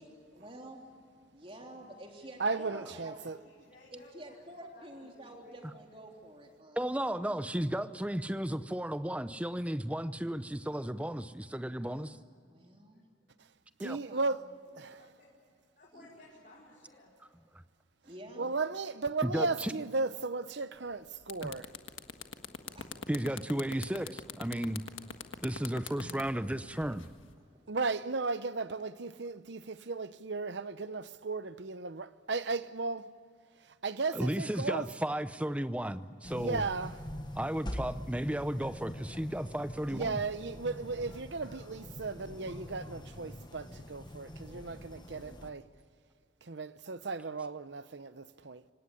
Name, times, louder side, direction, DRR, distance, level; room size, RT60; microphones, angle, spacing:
voice 1, 0.3-0.9 1.3-3.3 3.9-6.8 7.2-7.5 11.9-13.0 13.9-14.3 15.9-16.1 18.0-18.5 22.7-22.9, right 1 dB, 30° right, 3.5 m, -49 dB
voice 2, 2.4-3.4 13.8-14.5 18.4-21.7 27.7-33.1 33.8-34.9 36.3-37.0 39.9-45.6 46.4-48.6, right 3 dB, 60° right, 0.8 m, -35 dB
voice 3, 3.4-4.3 4.7-5.6 15.0-15.1 15.8-17.1, left 1 dB, 45° left, 5.1 m, -57 dB
voice 4, 6.8-12.2 13.8-14.0 19.2-19.7 21.4-21.5 23.1-24.8 25.4-27.1 34.1-36.6 37.4-40.2, right 1 dB, 5° right, 0.7 m, -34 dB
sound 1, 20.8-20.9 21.2-27.3, left 6 dB, 90° left, 1.6 m, -43 dB
sound 2, 36.2-45.5, left 1 dB, 20° left, 1.2 m, -44 dB
26.5 x 17.5 x 9.8 m
head